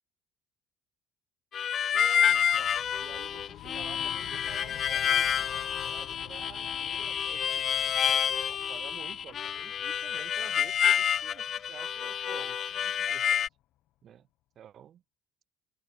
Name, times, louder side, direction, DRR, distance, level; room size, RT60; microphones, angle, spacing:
Harmonica, 1.5-13.5, left 9 dB, 50° left, 0.9 m, -28 dB
voice 1, 1.9-13.5 14.0-14.3 14.5-15.0, right 10 dB, 55° right, 3.3 m, -50 dB
sound 1, 2.2-13.6, left 15 dB, 70° left, 3.9 m, -51 dB
supercardioid pair, 75°, 0 cm